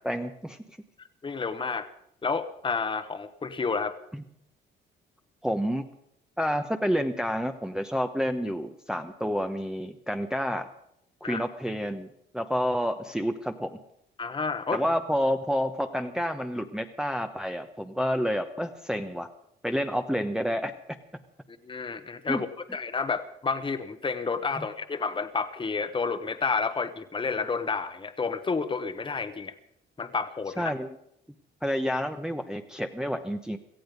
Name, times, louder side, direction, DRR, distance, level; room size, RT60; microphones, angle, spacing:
voice 1, 0.0-0.6 4.1-4.2 5.4-5.8 6.4-10.7 11.2-12.1 12.3-13.8 14.7-19.3 19.6-20.7 22.3-22.4 24.6-24.7 30.6-30.9 31.6-33.6, equal, 5° right, 5 dB, 0.9 m, -29 dB
voice 2, 1.2-1.9 2.2-3.9 11.2-11.4 14.2-14.8 21.5-22.5 22.7-29.5 30.0-30.7, left 4 dB, 25° left, 9 dB, 1.1 m, -30 dB
17.5 x 14.0 x 5.2 m, 0.74 s
cardioid pair, 90°, 20 cm